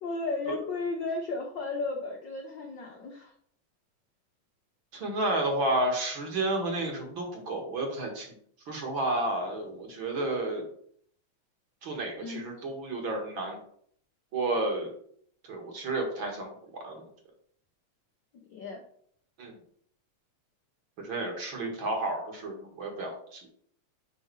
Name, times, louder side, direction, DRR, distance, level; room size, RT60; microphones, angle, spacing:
voice 1, 0.0-3.3 12.2-12.4 18.5-18.8, left 3 dB, 90° left, 2 dB, 1.0 m, -34 dB
voice 2, 4.9-8.3 8.7-10.7 11.8-13.6 14.3-14.9 15.5-17.0 19.4-19.5 21.0-23.4, right 2 dB, 50° right, 2 dB, 2.0 m, -31 dB
6.8 x 5.6 x 4.7 m, 0.63 s
omnidirectional pair, 3.3 m